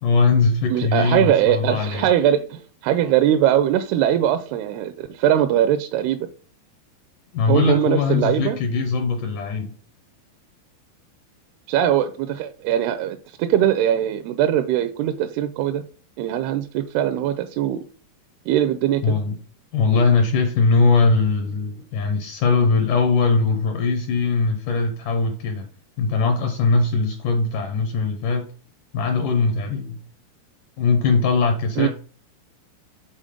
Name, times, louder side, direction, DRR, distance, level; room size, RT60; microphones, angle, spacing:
voice 1, 0.0-2.1 7.3-9.7 19.0-19.4 19.7-25.7 26.0-28.4 28.9-30.0 30.8-31.9, left 4 dB, 75° left, 2.0 m, -20 dB
voice 2, 0.7-6.3 7.5-8.6 11.7-15.8 16.2-17.8 18.5-19.2 31.8-31.9, right 11 dB, 85° right, 2.5 m, -21 dB
7.5 x 4.0 x 5.0 m
omnidirectional pair, 4.6 m